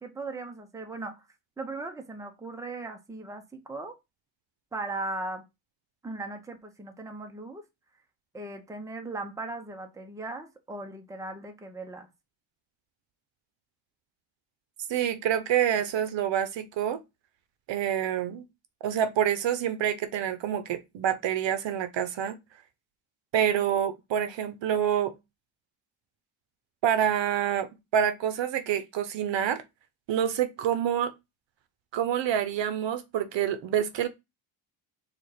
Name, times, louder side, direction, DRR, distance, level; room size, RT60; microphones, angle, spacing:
voice 1, 0.0-1.3 1.6-4.0 4.7-5.4 6.0-7.6 8.3-12.1, right 2 dB, 5° right, 0.7 m, -38 dB
voice 2, 14.9-17.0 17.7-18.4 18.8-22.4 23.3-25.1 26.8-29.6 30.1-31.1 31.9-34.1, right 9 dB, 60° right, 0.8 m, -27 dB
4.2 x 2.5 x 4.7 m
cardioid pair, 100°, 50 cm